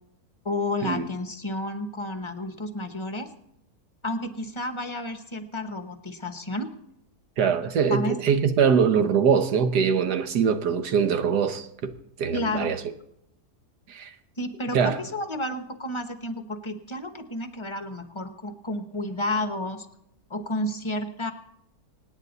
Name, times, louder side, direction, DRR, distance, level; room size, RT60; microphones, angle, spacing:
voice 1, 0.4-3.3 4.0-6.7 7.9-8.2 12.3-12.8 14.4-19.9 20.3-21.3, left 1 dB, 20° left, 0.9 m, -31 dB
voice 2, 7.4-11.7 12.2-12.8 13.9-14.1 14.7-15.0, right 6 dB, 80° right, 1.6 m, -22 dB
26.0 x 9.5 x 4.0 m
omnidirectional pair, 1.7 m